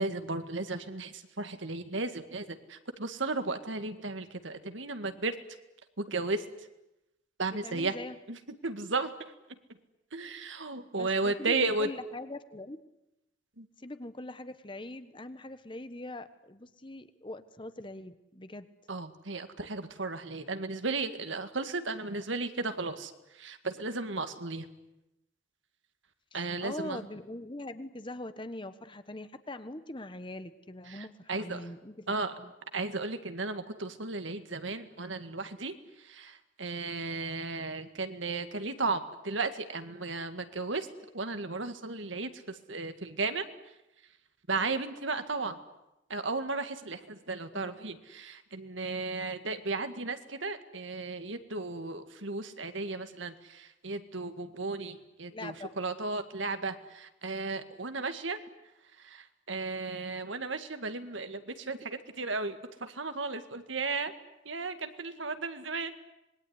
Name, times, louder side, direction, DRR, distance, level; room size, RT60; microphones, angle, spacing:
voice 1, 0.0-5.4 6.0-6.4 7.4-7.9 8.3-9.1 10.1-11.9 13.6-13.7 18.9-24.7 26.3-27.0 30.9-31.6 32.1-32.3 32.7-40.9 41.1-43.5 44.5-45.6 46.1-58.4 59.0-64.1 64.5-65.9, right 3 dB, 75° right, 8 dB, 2.1 m, -35 dB
voice 2, 7.6-8.2 10.9-12.8 13.8-18.7 26.3-32.5 47.5-47.7 55.3-55.7, left 1 dB, 25° left, 11 dB, 1.2 m, -42 dB
26.0 x 21.5 x 9.7 m, 0.91 s
head